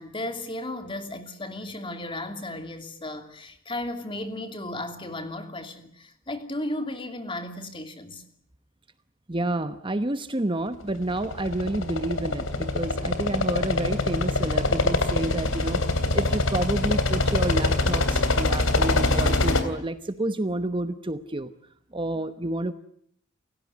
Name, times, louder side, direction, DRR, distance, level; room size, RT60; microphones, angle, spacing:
voice 1, 0.0-8.2, left 1 dB, 25° left, 7 dB, 2.8 m, -35 dB
voice 2, 9.3-15.8 16.1-21.5 21.9-22.7, right 1 dB, 25° right, 10 dB, 1.0 m, -29 dB
sound 1, 10.9-19.6, left 2 dB, 80° left, 3.2 m, -24 dB
30.0 x 16.5 x 9.5 m, 0.68 s
head